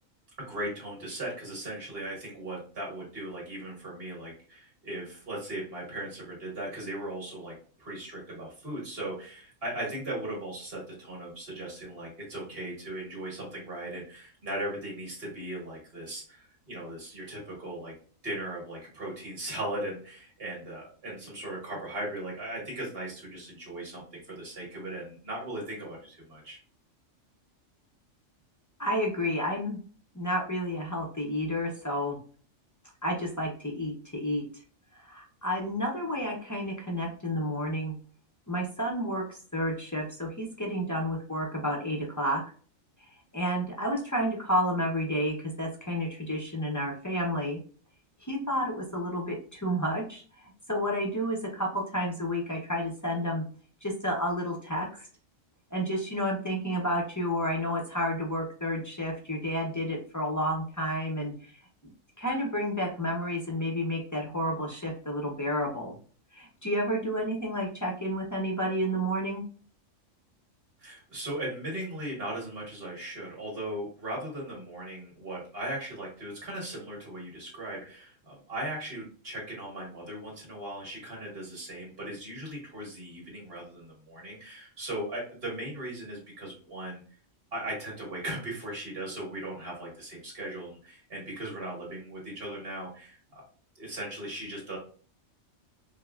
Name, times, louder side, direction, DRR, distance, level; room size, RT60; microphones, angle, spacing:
voice 1, 0.4-17.9 18.2-26.6 70.8-87.0 87.5-93.4 93.7-94.8, right 1 dB, 50° right, -3 dB, 1.8 m, -38 dB
voice 2, 28.8-29.8 30.1-32.2 33.0-34.5 34.9-37.9 38.5-42.4 43.3-47.6 48.2-53.4 53.8-55.1 55.7-61.5 62.2-65.9 66.3-69.4, equal, 25° left, -1 dB, 0.4 m, -31 dB
5.0 x 2.1 x 2.3 m, 0.42 s
omnidirectional pair, 1.4 m